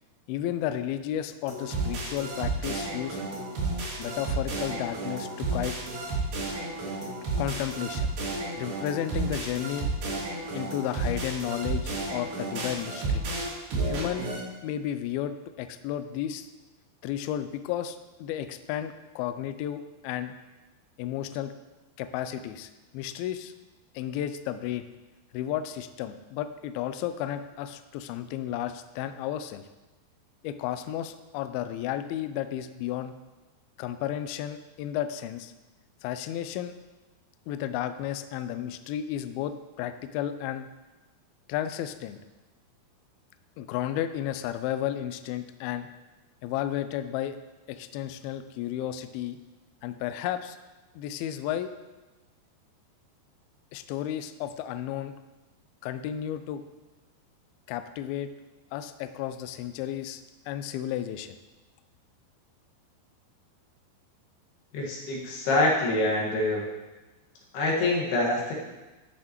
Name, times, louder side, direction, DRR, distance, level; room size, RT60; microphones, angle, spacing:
voice 1, 0.3-3.2 4.0-5.8 7.4-8.1 8.5-9.9 10.5-13.2 13.9-14.3 14.6-16.5 17.0-20.3 21.0-21.5 22.0-23.5 23.9-24.9 25.3-29.6 30.4-33.1 33.8-35.5 36.0-36.7 37.5-40.7 41.5-42.2 43.6-45.9 46.4-47.4 47.7-49.4 49.8-50.6 51.0-51.7 53.7-55.2 55.8-56.6 57.7-58.3 58.7-60.2 60.5-61.3, left 11 dB, 85° left, 10 dB, 2.1 m, -33 dB
sound 1, 1.5-14.4, right 3 dB, 65° right, 4.0 m, -32 dB
voice 2, 64.7-66.6 67.5-68.5, left 2 dB, 70° left, -3 dB, 3.6 m, -25 dB
13.5 x 6.5 x 3.0 m, 1.1 s
omnidirectional pair, 4.9 m